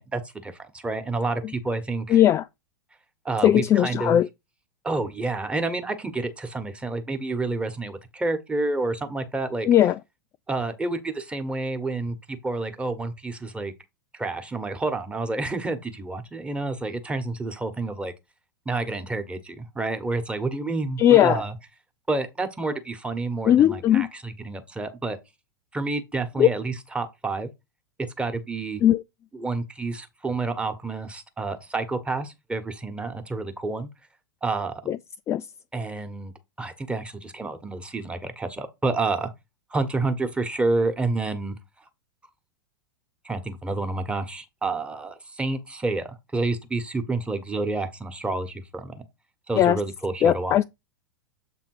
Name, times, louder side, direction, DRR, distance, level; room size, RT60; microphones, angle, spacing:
voice 1, 0.0-2.2 3.2-4.2 4.8-9.7 10.5-13.7 14.1-18.1 18.6-21.5 22.1-25.2 25.7-27.5 28.2-28.8 29.3-33.9 34.4-34.8 35.7-36.3 36.6-39.3 39.7-41.6 43.2-49.0 49.5-50.6, right 3 dB, 10° right, 1.3 m, -29 dB
voice 2, 2.1-2.4 3.4-4.3 9.7-10.0 21.0-21.4 23.5-24.1 26.4-26.5 28.8-29.0 34.9-35.0 35.3-35.4 49.6-49.8 50.2-50.6, left 11 dB, 25° left, 0.3 m, -18 dB
7.6 x 3.5 x 4.7 m
hypercardioid pair, 100°, 12 cm